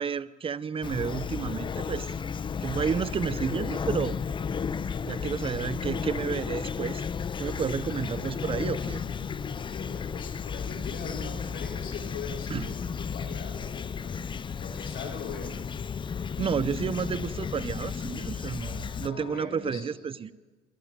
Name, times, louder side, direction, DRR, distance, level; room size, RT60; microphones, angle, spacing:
voice 1, 0.0-2.1 2.6-4.2 5.0-7.1 7.4-9.0 12.5-12.7 16.4-20.3, right 6 dB, 35° right, 17 dB, 0.8 m, -31 dB
Fowl / Chirp tweet, 0.8-19.1, left 6 dB, 30° left, 0.7 m, -33 dB
voice 2, 7.7-8.3 9.6-15.6 18.6-19.9, left 5 dB, 65° left, -1 dB, 5.0 m, -41 dB
sound 1, 8.9-19.4, left 10 dB, 90° left, 1.9 m, -51 dB
26.0 x 15.5 x 9.7 m, 1.3 s
cardioid pair, 110°, 17 cm